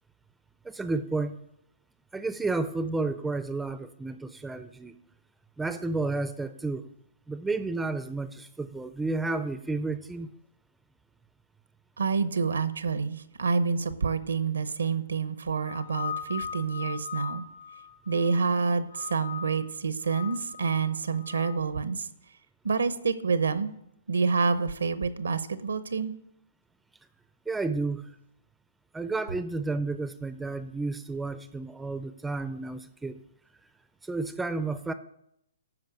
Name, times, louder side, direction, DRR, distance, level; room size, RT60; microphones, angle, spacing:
voice 1, 0.6-1.4 2.1-5.0 5.6-6.8 7.3-10.3 27.5-28.0 28.9-33.2 34.0-34.9, right 3 dB, 5° right, 12 dB, 0.4 m, -31 dB
voice 2, 12.0-17.4 18.1-22.1 22.6-23.7 24.1-26.1, right 5 dB, 85° right, 14 dB, 0.9 m, -28 dB
sound 1, 15.6-18.5 18.9-19.7 20.0-21.6, left 8 dB, 60° left, 1.8 m, -39 dB
12.0 x 4.6 x 7.9 m, 0.77 s
hypercardioid pair, 140°, 0 cm